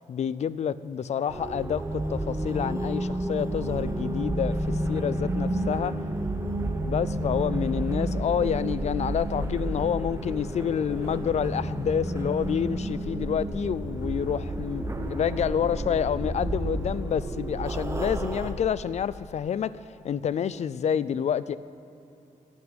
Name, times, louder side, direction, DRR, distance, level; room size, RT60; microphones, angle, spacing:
voice 1, 0.1-5.9 6.8-21.6, left 8 dB, 55° left, 17 dB, 0.4 m, -28 dB
sound 1, 1.3-18.5, right 1 dB, 20° right, 1.1 m, -30 dB
12.0 x 11.0 x 8.2 m, 2.9 s
wide cardioid pair, 150°, 14 cm